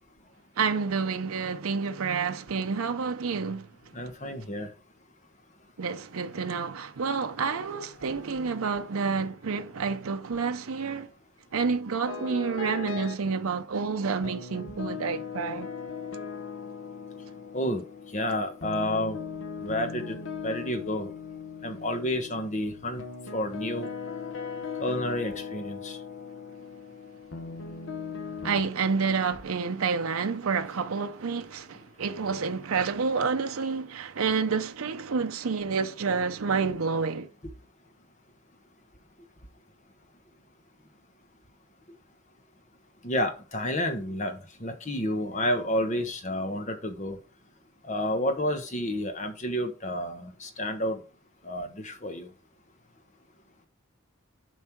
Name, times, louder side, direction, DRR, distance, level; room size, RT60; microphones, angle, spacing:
voice 1, 0.6-3.7 5.8-11.1 11.5-15.7 28.4-37.3, right 5 dB, 80° right, 0.6 m, -29 dB
voice 2, 3.9-4.7 17.5-19.3 19.6-21.1 21.6-23.0 23.3-23.9 24.8-26.0 39.2-39.3 41.9-42.0 43.0-47.2 47.8-51.0 51.4-52.3, left 1 dB, 35° left, 1.2 m, -30 dB
sound 1, 12.1-13.3 14.2-28.6, left 5 dB, 60° left, 1.0 m, -38 dB
7.2 x 5.4 x 4.6 m
head